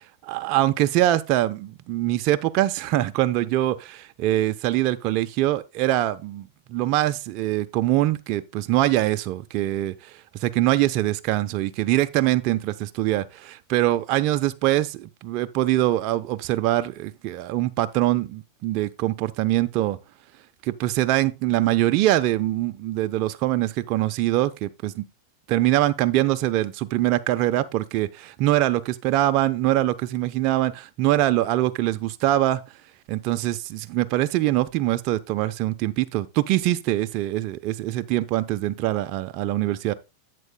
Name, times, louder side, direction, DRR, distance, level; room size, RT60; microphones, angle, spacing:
voice 1, 0.2-10.1 10.4-20.0 20.6-25.1 25.5-32.6 33.1-39.9, right 15 dB, 50° right, 0.7 m, -23 dB
11.0 x 8.3 x 2.2 m
hypercardioid pair, 115°, 0 cm